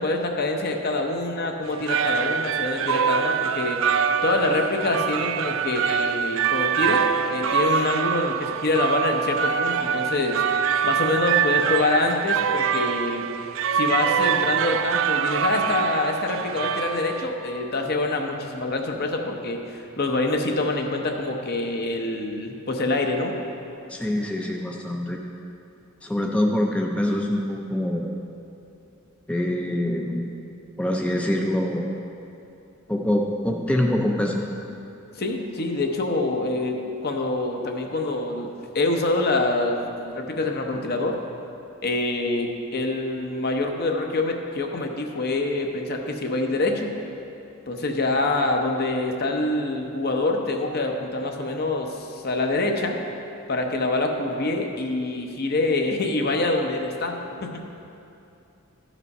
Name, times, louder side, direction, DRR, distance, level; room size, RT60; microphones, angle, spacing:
voice 1, 0.0-3.8 4.2-10.4 10.8-13.2 13.7-23.3 35.2-41.2 41.8-46.9 47.7-53.0 53.5-57.6, left 2 dB, 50° left, 2 dB, 0.8 m, -25 dB
sound 1, 1.6-17.5, right 7 dB, 65° right, 0.3 m, -24 dB
voice 2, 23.9-25.2 26.0-28.1 29.3-30.3 30.8-31.9 32.9-34.4, left 1 dB, 5° left, 0 dB, 0.5 m, -24 dB
13.0 x 5.1 x 5.4 m, 2.8 s
head